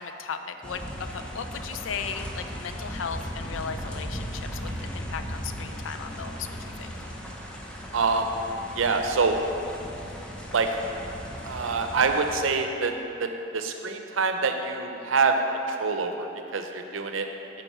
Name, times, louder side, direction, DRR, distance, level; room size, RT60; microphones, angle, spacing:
voice 1, 0.0-6.9, left 6 dB, 80° left, 8 dB, 0.4 m, -36 dB
sound 1, 0.6-12.4, equal, 5° left, 0.7 m, -37 dB
voice 2, 7.9-8.3 8.8-9.4 10.5-10.8 11.4-12.9 13.2-13.3 13.5-15.4 15.7-16.3 16.5-17.3, right 4 dB, 85° right, 5 dB, 0.6 m, -25 dB
9.2 x 3.9 x 5.5 m, 2.9 s
head